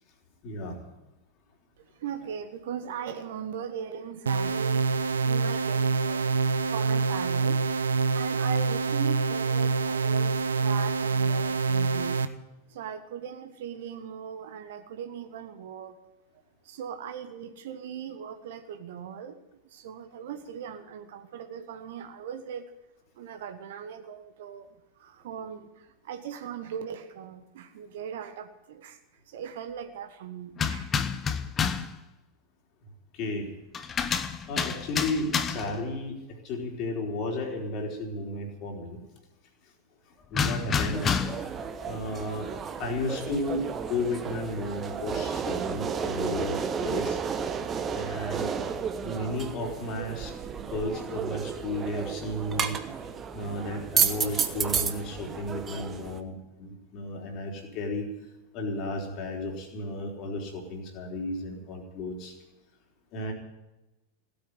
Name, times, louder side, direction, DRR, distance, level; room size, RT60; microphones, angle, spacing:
voice 1, 0.4-0.8 33.1-33.5 34.5-39.0 40.3-41.1 41.8-42.5 42.8-47.2 47.9-48.5 49.0-50.4 50.7-52.8 53.3-58.1 58.5-62.3 63.1-63.3, left 1 dB, 40° left, 1 dB, 3.6 m, -33 dB
voice 2, 1.8-4.9 5.2-7.6 8.1-12.2 12.7-16.0 16.6-19.4 19.6-22.7 23.1-24.7 25.0-29.0 29.3-30.9, right 8 dB, 55° right, 9 dB, 1.3 m, -39 dB
sound 1, 4.3-12.3, right 4 dB, 70° right, 0.8 m, -26 dB
sound 2, 30.6-32.0 33.7-35.8 40.3-41.5, left 6 dB, 25° left, 1.0 m, -29 dB
sound 3, 40.9-56.2, right 6 dB, 25° right, 1.1 m, -32 dB
16.0 x 8.7 x 10.0 m, 1.0 s
figure-of-eight pair, 90°, 0 cm